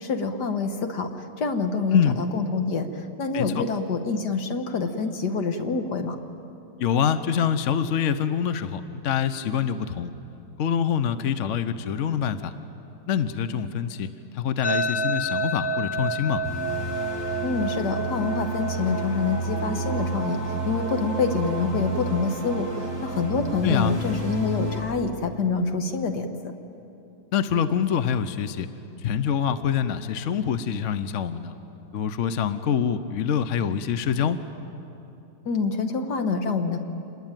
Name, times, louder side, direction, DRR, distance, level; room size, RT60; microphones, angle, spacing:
voice 1, 0.0-2.9 3.2-6.2 17.4-26.5 35.5-36.8, left 4 dB, 70° left, 6 dB, 2.0 m, -26 dB
voice 2, 3.3-3.6 6.8-10.1 10.6-12.5 13.1-14.1 14.3-16.4 23.6-23.9 27.3-28.7 29.0-31.5 31.9-34.4, left 8 dB, 55° left, 12 dB, 1.0 m, -25 dB
sound 1, 14.6-23.7, right 2 dB, 30° left, 0.4 m, -32 dB
sound 2, 16.4-24.8, right 1 dB, 15° left, 6.0 m, -31 dB
26.5 x 21.0 x 9.1 m, 2.8 s
omnidirectional pair, 1.9 m